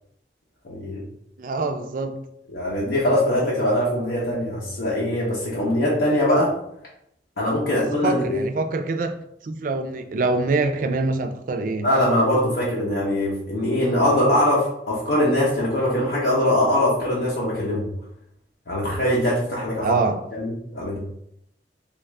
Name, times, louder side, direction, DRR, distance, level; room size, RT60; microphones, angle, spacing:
voice 1, 0.6-1.0 2.5-6.5 7.4-8.4 11.8-17.8 18.7-20.0 20.4-21.0, left 1 dB, 70° left, -6 dB, 0.7 m, -22 dB
voice 2, 1.4-2.2 7.7-11.9 19.8-20.2, right 3 dB, 50° right, 7 dB, 0.3 m, -25 dB
3.3 x 2.4 x 3.2 m, 0.75 s
head